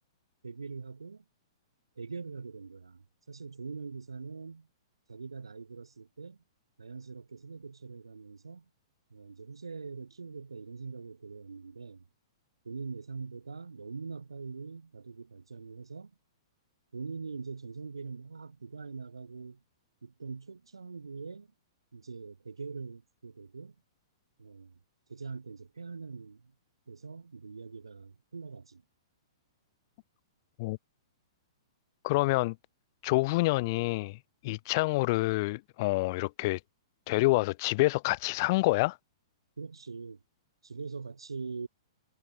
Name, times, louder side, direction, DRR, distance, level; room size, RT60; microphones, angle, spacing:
voice 1, 0.4-1.2 2.0-4.7 5.1-6.4 6.8-8.6 9.1-12.0 12.6-16.1 16.9-19.6 20.0-21.5 21.9-23.8 24.4-24.8 25.1-26.5 26.9-28.8 39.6-40.2 40.6-41.7, right 4 dB, 85° right, 2.3 m, -43 dB
voice 2, 32.0-32.6 33.0-36.6 37.1-39.0, left 22 dB, 45° left, 0.4 m, -27 dB
figure-of-eight pair, 115°, 3 cm